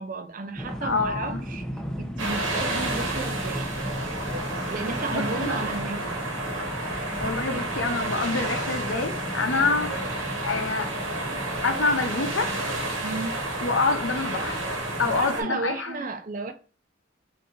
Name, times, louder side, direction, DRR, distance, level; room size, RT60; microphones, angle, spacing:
voice 1, 0.0-1.7 2.2-3.7 4.7-6.2 13.0-13.3 15.0-16.5, right 4 dB, 40° right, 0.4 m, -33 dB
sound 1, 0.5-15.3, equal, 5° left, 0.6 m, -36 dB
voice 2, 0.8-1.4 5.1-5.5 6.9-10.0 10.4-10.9 11.2-12.6 13.6-14.7 15.0-16.0, left 3 dB, 70° left, 0.7 m, -27 dB
sound 2, 2.2-15.4, right 2 dB, 75° right, 1.2 m, -31 dB
3.8 x 2.7 x 3.9 m
head